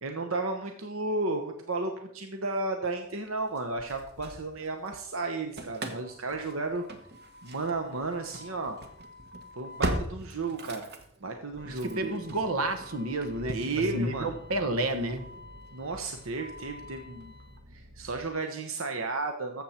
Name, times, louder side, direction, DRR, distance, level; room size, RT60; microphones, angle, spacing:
voice 1, 0.0-6.8 7.4-8.8 9.5-10.9 11.2-12.2 13.5-14.3 15.7-17.3 17.7-19.6, right 3 dB, 70° right, 5 dB, 1.0 m, -33 dB
Engine starting / Slam, 3.6-4.9 5.2-18.3, right 1 dB, 50° right, 1.3 m, -41 dB
voice 2, 11.7-15.3, right 1 dB, 85° right, 8 dB, 1.3 m, -31 dB
12.5 x 7.7 x 4.4 m, 0.68 s
head